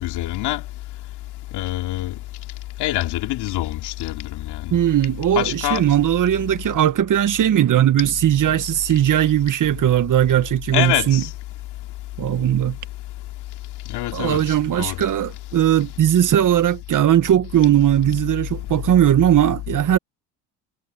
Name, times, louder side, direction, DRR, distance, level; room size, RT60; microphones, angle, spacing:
voice 1, 0.0-0.6 1.5-2.1 2.8-4.8 5.3-5.8 10.7-11.3 13.9-15.0, left 16 dB, 65° left, 3.0 m, -25 dB
voice 2, 4.7-11.2 12.2-12.8 14.1-20.0, right 11 dB, 45° right, 1.7 m, -18 dB
hypercardioid pair, 75°, 43 cm